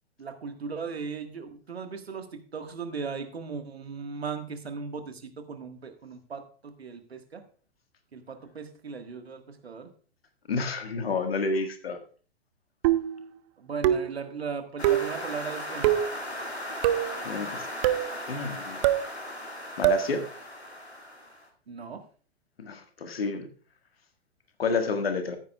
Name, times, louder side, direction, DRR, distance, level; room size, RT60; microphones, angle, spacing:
voice 1, 0.2-7.4 8.1-9.9 13.6-16.0 21.7-22.0, right 5 dB, 75° right, 7 dB, 1.6 m, -37 dB
voice 2, 10.5-12.0 17.2-17.7 18.3-18.8 19.8-20.2 22.6-23.5 24.6-25.4, left 4 dB, 65° left, 7 dB, 1.8 m, -29 dB
sound 1, 12.8-13.2 13.8-14.2 14.8-15.2 15.8-16.1 16.8-17.2 17.8-18.1 18.8-19.1 19.8-20.1, right 13 dB, 30° right, 0.5 m, -24 dB
sound 2, 14.8-21.5, left 1 dB, 90° left, 2.2 m, -37 dB
15.0 x 9.2 x 2.3 m, 0.41 s
figure-of-eight pair, 110°, 32 cm